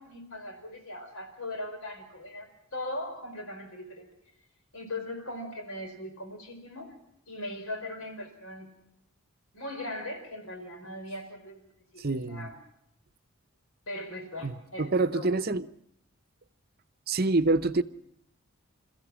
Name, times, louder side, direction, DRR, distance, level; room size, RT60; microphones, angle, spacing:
voice 1, 0.0-4.1 4.7-6.9 7.3-8.7 9.5-11.6 11.9-12.6 13.9-15.3, left 1 dB, 75° left, 4.8 m, -39 dB
voice 2, 12.0-12.5 14.4-15.6 17.1-17.8, right 3 dB, 45° right, 0.8 m, -26 dB
29.5 x 14.5 x 6.3 m
head